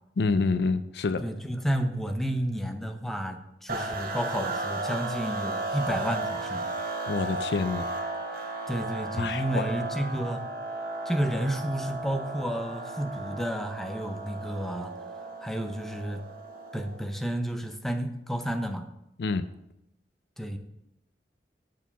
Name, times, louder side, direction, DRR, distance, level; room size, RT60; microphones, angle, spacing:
voice 1, 0.2-1.2 7.1-7.9 8.4-8.6 9.2-9.7 19.2-19.5, left 4 dB, 65° left, 12 dB, 0.4 m, -27 dB
voice 2, 1.2-6.7 8.7-10.5 11.1-14.9 15.4-16.2 16.7-18.8 20.4-20.6, equal, ahead, 5 dB, 0.6 m, -31 dB
sound 1, 3.7-17.1, right 2 dB, 55° right, 1.1 m, -35 dB
8.1 x 4.6 x 7.0 m, 0.85 s
head